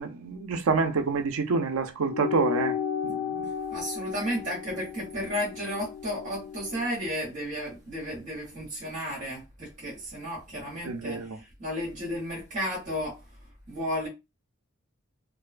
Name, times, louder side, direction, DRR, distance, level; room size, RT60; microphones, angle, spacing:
voice 1, 0.0-2.8 3.0-3.5 10.8-11.4, right 4 dB, 80° right, 0.5 m, -27 dB
sound 1, 2.1-6.9, left 7 dB, 60° left, 0.3 m, -34 dB
voice 2, 3.7-13.2 13.7-14.1, equal, 35° right, 1.0 m, -33 dB
2.6 x 2.2 x 2.4 m
head